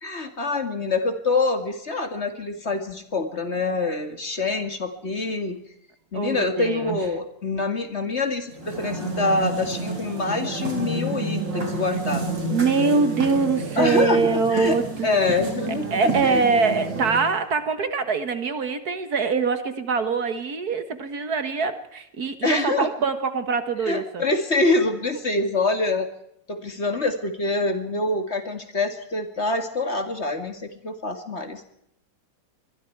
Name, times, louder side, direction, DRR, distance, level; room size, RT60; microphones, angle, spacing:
voice 1, 0.0-5.6 6.1-12.3 13.3-13.5 13.8-14.8 15.0-15.9 16.2-16.4 22.4-22.9 23.9-26.1 26.5-31.6, left 3 dB, 40° left, 7 dB, 2.3 m, -25 dB
voice 2, 6.1-7.0 12.5-15.1 15.9-24.2, right 5 dB, 60° right, 10 dB, 1.9 m, -23 dB
sound 1, 8.5-17.4, right 2 dB, 90° right, 4.8 m, -30 dB
25.0 x 22.0 x 4.7 m, 0.74 s
omnidirectional pair, 1.9 m